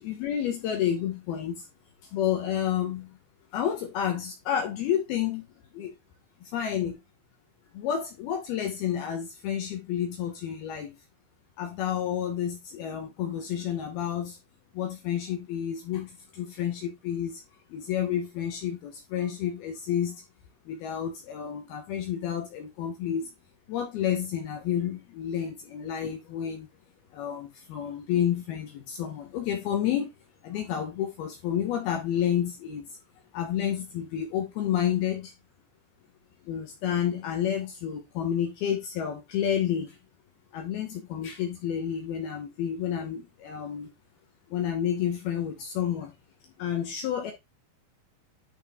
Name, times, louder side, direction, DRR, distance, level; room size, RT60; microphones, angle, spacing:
voice 1, 0.0-1.7 2.1-3.2 3.5-5.4 5.7-5.9 6.4-7.0 7.7-10.9 11.6-14.4 14.7-17.4 17.7-20.2 20.7-23.3 23.7-26.7 27.1-30.1 30.4-33.0 33.3-35.3 36.5-40.0 40.5-43.9 44.5-46.1 46.6-47.3, left 9 dB, 80° left, 2.2 m, -30 dB
11.0 x 4.1 x 3.6 m
omnidirectional pair, 6.0 m